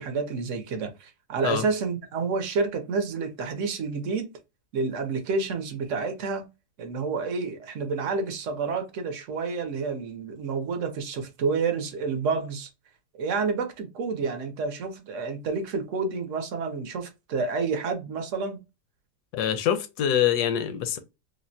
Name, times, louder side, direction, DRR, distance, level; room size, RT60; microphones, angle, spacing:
voice 1, 0.0-4.3 4.7-6.5 6.8-12.7 13.2-18.6, right 4 dB, 65° right, 0.9 m, -29 dB
voice 2, 19.3-21.0, left 9 dB, 80° left, 1.1 m, -25 dB
3.3 x 2.1 x 2.6 m
omnidirectional pair, 1.7 m